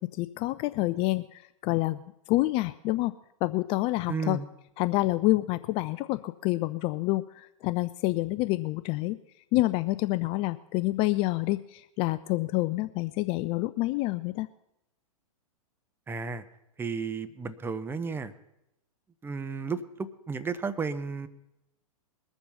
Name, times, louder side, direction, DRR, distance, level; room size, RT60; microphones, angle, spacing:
voice 1, 0.1-2.0 2.3-3.1 3.4-4.4 4.8-9.2 9.5-14.5, left 19 dB, 30° left, 14 dB, 0.4 m, -28 dB
voice 2, 4.1-4.5 16.1-16.4 16.8-18.3 19.2-21.3, right 5 dB, 10° right, 11 dB, 0.7 m, -33 dB
21.0 x 7.2 x 5.6 m, 0.86 s
hypercardioid pair, 115°, 19 cm